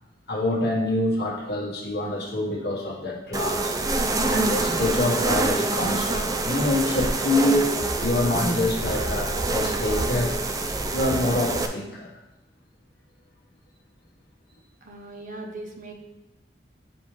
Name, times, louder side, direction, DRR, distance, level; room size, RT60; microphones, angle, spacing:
voice 1, 0.3-3.7 4.2-10.3 10.9-12.2, left 1 dB, 70° left, -3 dB, 1.5 m, -26 dB
sound 1, 3.3-11.7, right 2 dB, 20° right, 0.4 m, -26 dB
voice 2, 14.8-15.9, right 2 dB, 45° right, 2 dB, 0.9 m, -39 dB
9.4 x 3.6 x 3.3 m, 0.96 s
head